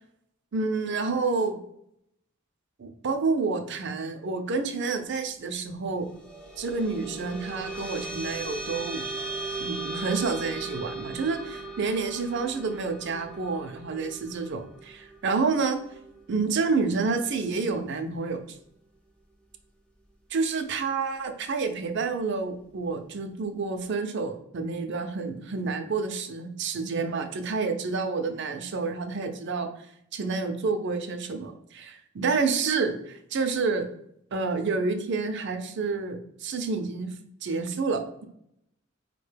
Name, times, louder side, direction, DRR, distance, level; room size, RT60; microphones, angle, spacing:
voice 1, 0.5-1.6 2.8-6.1 6.6-9.1 9.6-15.8 16.3-18.6 20.3-29.9 30.1-33.8 34.3-37.1 37.4-38.3, right 4 dB, 60° right, 6 dB, 0.5 m, -29 dB
sound 1, 6.0-16.7, right 2 dB, 5° left, 0.6 m, -38 dB
4.8 x 2.2 x 3.2 m, 0.76 s
head